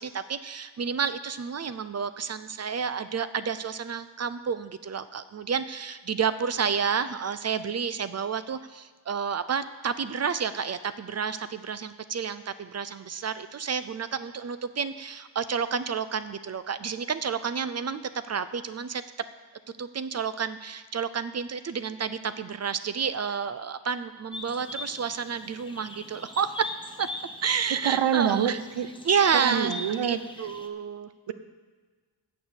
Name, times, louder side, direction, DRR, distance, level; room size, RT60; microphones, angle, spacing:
voice 1, 0.0-19.0 19.8-26.7 27.0-27.1 27.4-28.6 29.0-29.7 30.0-31.1, right 6 dB, 35° right, 13 dB, 0.4 m, -30 dB
sound 1, 24.3-30.7, left 2 dB, 10° left, 0.6 m, -41 dB
voice 2, 27.8-28.9 29.4-30.2 31.3-31.4, right 9 dB, 65° right, 10 dB, 0.7 m, -26 dB
8.7 x 6.8 x 7.9 m, 1.4 s
wide cardioid pair, 165°, 46 cm